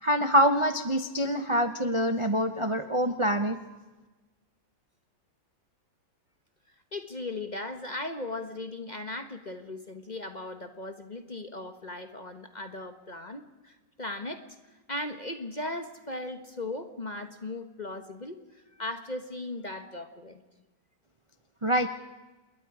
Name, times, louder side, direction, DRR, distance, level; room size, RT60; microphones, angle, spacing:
voice 1, 0.0-3.6 21.6-21.9, equal, 30° right, 7 dB, 0.6 m, -25 dB
voice 2, 6.9-14.4 14.9-20.4, left 2 dB, 30° left, 7 dB, 1.0 m, -38 dB
28.0 x 21.5 x 5.0 m, 1.2 s
omnidirectional pair, 2.0 m